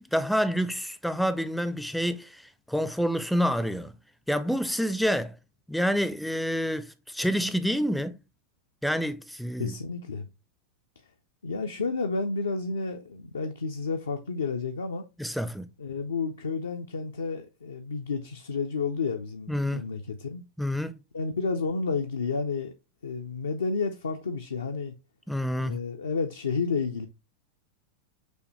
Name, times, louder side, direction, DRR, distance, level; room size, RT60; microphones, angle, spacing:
voice 1, 0.0-2.4 2.7-4.0 4.3-5.4 5.7-8.2 8.8-9.8 15.2-15.7 19.5-19.8 20.6-21.0 25.3-25.8, equal, ahead, 0.4 m, -28 dB
voice 2, 9.6-10.3 11.4-15.0 15.8-20.4 21.1-22.7 23.0-24.9 25.6-27.1, left 4 dB, 70° left, 0.4 m, -31 dB
6.2 x 2.7 x 3.0 m
figure-of-eight pair, 90°, 0 cm